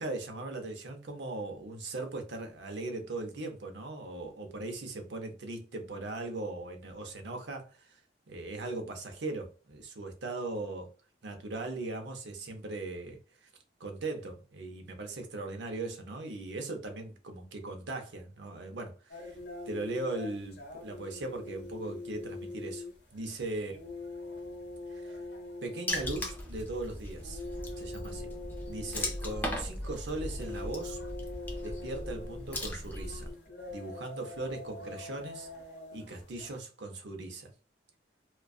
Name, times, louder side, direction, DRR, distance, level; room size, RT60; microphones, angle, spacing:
voice 1, 0.0-8.0 8.3-10.9 11.2-13.5 13.8-19.4 19.7-22.9 23.1-23.8 24.9-25.2 25.6-27.4 27.8-28.3 28.6-31.0 31.6-33.3 33.7-35.5 35.9-37.5, right 2 dB, 75° right, 0.6 m, -39 dB
sound 1, 19.1-36.6, left 2 dB, 70° left, 0.8 m, -44 dB
Water / Splash splatter, 25.9-33.3, left 1 dB, 10° left, 0.4 m, -38 dB
2.5 x 2.3 x 2.3 m
head